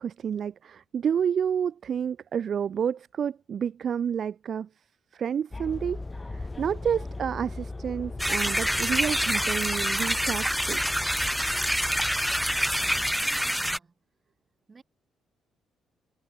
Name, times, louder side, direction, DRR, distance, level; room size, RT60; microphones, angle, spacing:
voice 1, 0.0-4.7 5.1-10.8, right 8 dB, 55° right, 0.6 m, -30 dB
sound 1, 5.5-13.1, left 2 dB, 20° left, 2.6 m, -39 dB
sound 2, 8.2-13.8, equal, ahead, 0.6 m, -26 dB
voice 2, 12.8-13.9 14.7-14.8, right 4 dB, 30° right, 6.9 m, -52 dB
cardioid pair, 90°, 0 cm